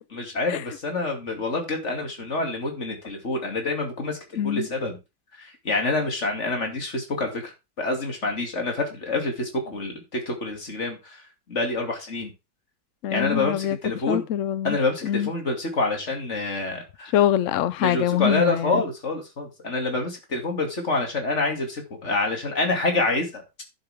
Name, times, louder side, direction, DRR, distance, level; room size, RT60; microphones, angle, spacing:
voice 1, 0.1-5.0 5.3-12.3 13.1-14.2 14.6-17.1 17.8-23.4, left 2 dB, 35° left, 2.9 m, -27 dB
voice 2, 4.4-4.7 13.0-13.8 14.1-14.8 15.0-15.3 17.1-18.8, left 11 dB, 80° left, 0.6 m, -24 dB
11.0 x 7.6 x 3.6 m
omnidirectional pair, 2.1 m